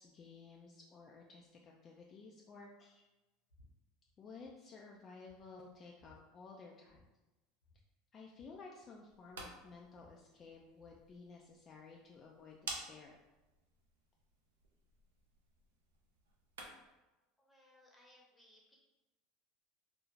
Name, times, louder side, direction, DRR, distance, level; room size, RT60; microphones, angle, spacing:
voice 1, 0.0-3.1 4.2-7.0 8.1-13.2, left 4 dB, 40° left, -1 dB, 0.3 m, -55 dB
sound 1, 3.5-3.7 4.0-4.5 4.9-5.0 5.3-6.2 6.8-7.1 7.3-7.4 7.6-9.3 9.6-11.0, left 2 dB, 90° left, 0.8 m, -67 dB
sound 2, 9.0-17.0, right 2 dB, 85° right, 0.4 m, -53 dB
voice 2, 17.4-18.8, left 1 dB, 10° left, -3 dB, 0.8 m, -65 dB
2.4 x 2.0 x 3.1 m, 1.1 s
hypercardioid pair, 85°, 0 cm